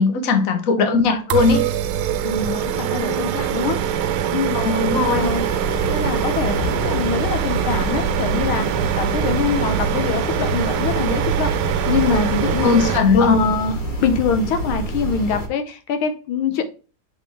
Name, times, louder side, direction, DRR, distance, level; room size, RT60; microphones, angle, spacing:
voice 1, 0.0-1.6 4.5-5.3 12.6-13.3, left 4 dB, 50° left, 1.3 m, -18 dB
voice 2, 0.7-1.2 2.2-3.9 4.3-4.6 5.0-5.4 5.9-11.6 11.9-13.8 14.0-16.6, left 5 dB, 80° left, 1.6 m, -24 dB
sound 1, 1.3-13.0, right 9 dB, 90° right, 1.5 m, -23 dB
sound 2, 5.1-15.5, equal, 25° left, 1.3 m, -28 dB
7.1 x 4.0 x 3.4 m
omnidirectional pair, 2.2 m